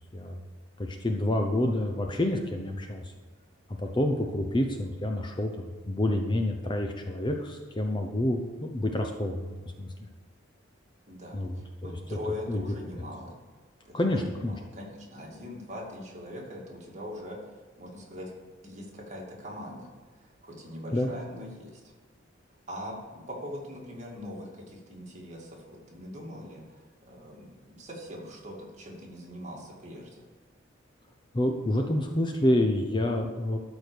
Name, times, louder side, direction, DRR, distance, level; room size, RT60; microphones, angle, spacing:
voice 1, 0.8-3.1 3.8-9.9 11.3-12.0 12.5-12.6 13.9-14.6 20.9-21.1 31.3-33.6, left 1 dB, 20° left, 3 dB, 0.6 m, -28 dB
voice 2, 11.1-13.3 13.8-18.3 18.6-21.8 22.7-30.3, left 1 dB, 35° right, -3 dB, 2.2 m, -42 dB
12.5 x 4.6 x 6.8 m, 1.4 s
head